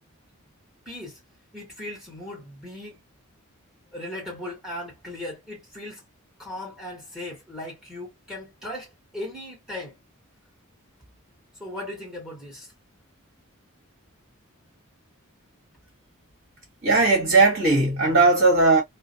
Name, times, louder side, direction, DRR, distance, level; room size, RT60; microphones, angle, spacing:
voice 1, 0.8-1.2 1.5-3.0 3.9-6.0 6.4-10.0 11.6-12.7, left 1 dB, ahead, 1.2 m, -37 dB
voice 2, 16.8-18.8, right 3 dB, 50° right, 1.3 m, -18 dB
2.3 x 2.1 x 2.7 m
head